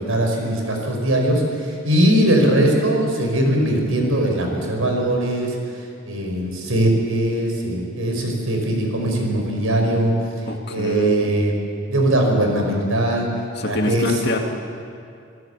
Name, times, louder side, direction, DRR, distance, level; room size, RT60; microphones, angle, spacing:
voice 1, 0.0-5.6 6.1-10.1 10.7-11.5 11.9-13.3 13.6-14.1, right 1 dB, 85° right, 2 dB, 5.2 m, -20 dB
voice 2, 10.5-11.3 13.6-14.4, left 2 dB, 50° left, 3 dB, 2.3 m, -24 dB
27.5 x 17.0 x 8.3 m, 2.4 s
head